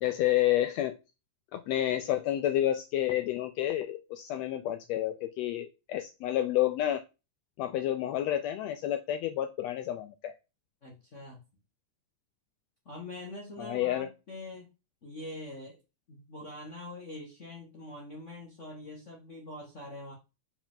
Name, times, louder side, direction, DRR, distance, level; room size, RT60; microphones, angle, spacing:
voice 1, 0.0-1.0 1.5-7.0 7.6-10.3 13.6-14.1, left 12 dB, 85° left, 8 dB, 1.5 m, -29 dB
voice 2, 10.8-11.4 12.8-14.7 15.0-15.8 16.1-20.1, left 1 dB, 65° left, -2 dB, 0.7 m, -44 dB
6.4 x 5.0 x 3.6 m, 0.28 s
omnidirectional pair, 3.6 m